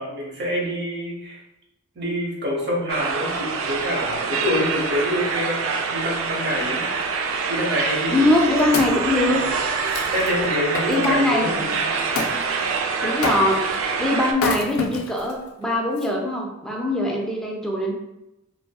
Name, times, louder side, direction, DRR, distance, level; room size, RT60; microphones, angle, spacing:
voice 1, 0.0-1.4 1.9-6.9 7.5-8.3 9.3-9.4 10.1-11.9, equal, 55° right, -2 dB, 0.8 m, -26 dB
sound 1, 2.9-14.3, right 5 dB, 75° right, 0.3 m, -26 dB
Wood, 8.1-11.1 12.2-12.4 13.2-13.7 14.3-15.3 16.0-16.1, left 4 dB, 85° left, 0.4 m, -28 dB
voice 2, 8.1-9.4 10.9-11.8 13.0-17.9, left 1 dB, 5° left, -2 dB, 0.4 m, -22 dB
2.6 x 2.5 x 2.3 m, 0.91 s
head